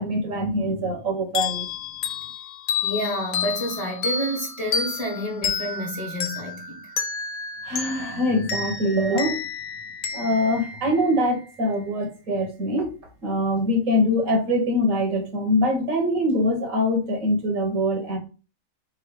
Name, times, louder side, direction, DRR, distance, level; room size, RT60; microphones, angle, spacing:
voice 1, 0.0-1.7 7.6-9.4 10.1-13.0 13.2-18.2, left 1 dB, 65° right, 1.4 m, -23 dB
sound 1, 1.4-11.6, left 5 dB, 90° left, 1.2 m, -30 dB
voice 2, 2.8-6.9, equal, 25° left, 1.3 m, -29 dB
3.7 x 2.8 x 4.6 m
omnidirectional pair, 1.5 m